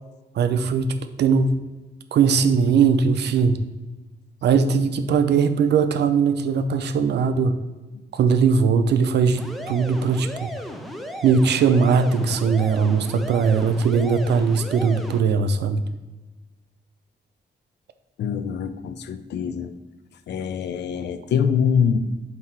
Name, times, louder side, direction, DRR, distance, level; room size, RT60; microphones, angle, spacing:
voice 1, 0.4-1.5 2.1-3.5 4.4-7.5 8.1-10.5 11.2-15.8, right 5 dB, 75° right, 9 dB, 0.6 m, -20 dB
sound 1, 9.4-15.2, equal, ahead, 0.7 m, -35 dB
voice 2, 18.2-19.7 20.3-22.0, left 7 dB, 80° left, 10 dB, 0.6 m, -24 dB
7.7 x 2.9 x 5.9 m, 1.2 s
cardioid pair, 105°, 17 cm